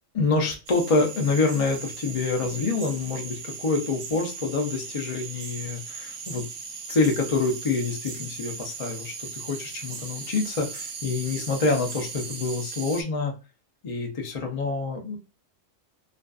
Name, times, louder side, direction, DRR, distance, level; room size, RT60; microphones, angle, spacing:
voice 1, 0.1-6.5 6.9-13.3 13.8-15.2, left 3 dB, 60° left, 1 dB, 0.3 m, -26 dB
sound 1, 0.7-13.0, right 5 dB, 70° right, 0.9 m, -38 dB
2.4 x 2.4 x 2.2 m, 0.30 s
omnidirectional pair, 1.3 m